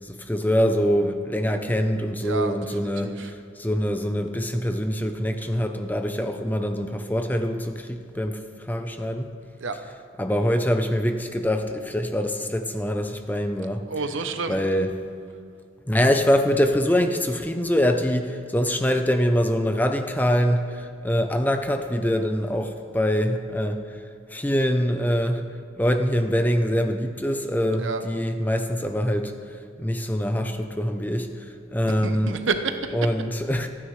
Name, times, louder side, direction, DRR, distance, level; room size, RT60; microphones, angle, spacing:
voice 1, 0.1-3.3 3.6-8.4 8.7-9.3 10.2-13.8 14.5-14.9 15.9-23.8 24.3-25.4 25.8-29.3 29.8-31.3 31.7-32.4 32.9-33.7, equal, 10° left, 6 dB, 0.6 m, -24 dB
voice 2, 2.2-2.5 2.8-3.3 9.6-9.8 13.9-14.6 27.8-28.0 32.0-32.9, right 4 dB, 85° right, 8 dB, 0.9 m, -29 dB
27.0 x 9.6 x 3.3 m, 2.2 s
head